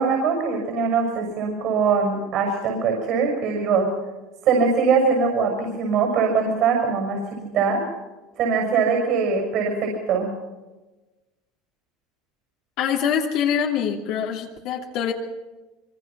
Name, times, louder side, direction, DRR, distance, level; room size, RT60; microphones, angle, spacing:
voice 1, 0.0-3.9 4.4-7.8 8.4-10.3, right 5 dB, 55° right, 1 dB, 6.4 m, -22 dB
voice 2, 12.8-15.1, left 8 dB, 65° left, 0 dB, 2.8 m, -24 dB
24.5 x 24.0 x 6.2 m, 1.2 s
supercardioid pair, 125°, 0 cm